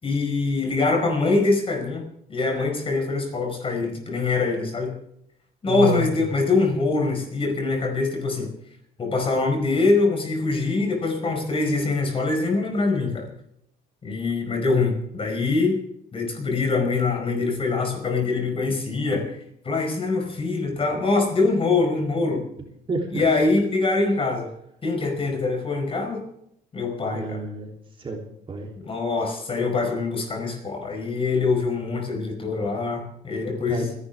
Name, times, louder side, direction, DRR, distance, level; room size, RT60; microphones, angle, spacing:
voice 1, 0.0-2.0 2.3-4.9 5.6-8.5 9.0-13.3 14.0-15.8 16.1-19.3 19.6-22.4 23.1-24.5 24.8-26.2 26.7-27.4 28.8-33.9, left 3 dB, 35° left, 3 dB, 5.0 m, -24 dB
voice 2, 5.7-6.3 22.9-23.2 27.1-28.2 28.5-28.7 33.7-33.9, right 3 dB, 30° right, 1 dB, 3.4 m, -29 dB
30.0 x 11.5 x 3.6 m, 0.74 s
cardioid pair, 110°, 17 cm